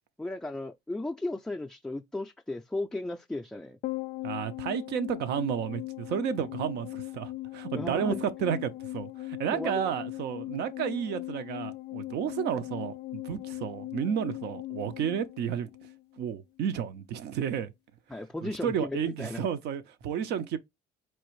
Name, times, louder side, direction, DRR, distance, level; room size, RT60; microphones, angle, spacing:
voice 1, 0.2-3.8 7.7-8.2 9.5-9.9 18.1-19.5, left 2 dB, 5° left, 0.3 m, -35 dB
sound 1, 3.8-16.4 16.6-16.7, left 17 dB, 80° left, 0.4 m, -39 dB
voice 2, 4.2-15.7 16.2-17.7 18.4-20.6, right 8 dB, 80° right, 0.6 m, -32 dB
4.5 x 2.5 x 3.1 m
cardioid pair, 110°, 17 cm